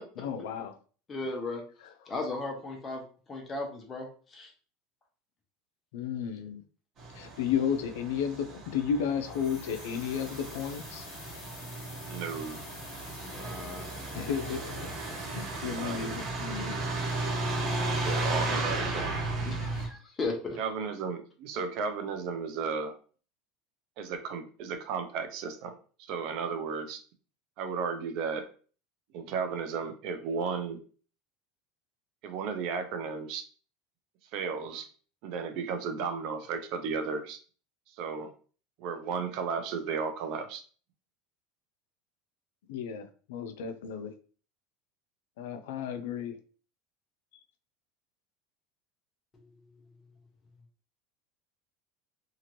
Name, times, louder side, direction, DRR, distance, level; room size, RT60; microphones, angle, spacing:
voice 1, 0.2-0.8 5.9-6.6 7.1-11.0 14.1-14.9 15.3-16.8 18.2-18.6 42.7-44.1 45.4-46.4, left 8 dB, 85° left, 8 dB, 0.4 m, -33 dB
voice 2, 1.1-1.6 2.1-3.0 3.3-4.5 13.2-13.9 19.4-20.6, left 3 dB, 20° left, 2 dB, 0.8 m, -36 dB
Truck, 7.0-19.9, right 2 dB, 35° right, 1.1 m, -35 dB
sound 1, 9.2-18.1, left 4 dB, 65° left, 1.2 m, -50 dB
voice 3, 12.1-12.6 15.6-16.1 17.9-19.1 20.6-22.9 24.0-27.0 27.6-28.5 29.1-30.8 32.2-33.4 34.3-34.9 35.2-37.4 37.9-38.3 38.8-40.6, right 5 dB, 60° right, 8 dB, 0.5 m, -34 dB
2.8 x 2.4 x 3.0 m, 0.40 s
supercardioid pair, 140°, 0 cm